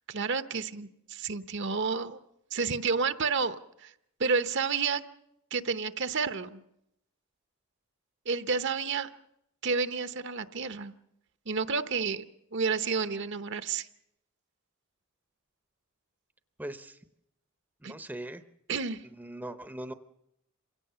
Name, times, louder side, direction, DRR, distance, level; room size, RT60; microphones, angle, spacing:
voice 1, 0.1-2.2 2.5-3.9 4.2-5.0 5.5-6.6 8.2-9.1 9.6-10.9 11.5-12.2 12.5-13.9 17.8-17.9 18.7-19.0, right 5 dB, 60° right, 11 dB, 0.9 m, -30 dB
voice 2, 16.6-17.0 17.8-18.4 19.1-19.9, right 1 dB, 10° right, 10 dB, 0.7 m, -40 dB
27.0 x 17.0 x 6.9 m, 0.80 s
head